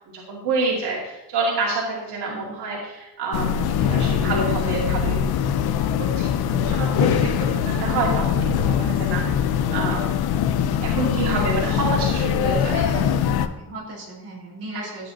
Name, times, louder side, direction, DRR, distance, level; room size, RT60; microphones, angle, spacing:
voice 1, 0.1-5.5 6.0-10.1 10.8-13.0, right 3 dB, 75° right, -4 dB, 2.3 m, -28 dB
sound 1, 3.3-13.5, left 8 dB, 65° left, 0.6 m, -22 dB
voice 2, 12.7-15.1, right 1 dB, 35° right, -5 dB, 4.1 m, -37 dB
13.5 x 8.8 x 2.8 m, 0.98 s
cardioid pair, 175°, 40 cm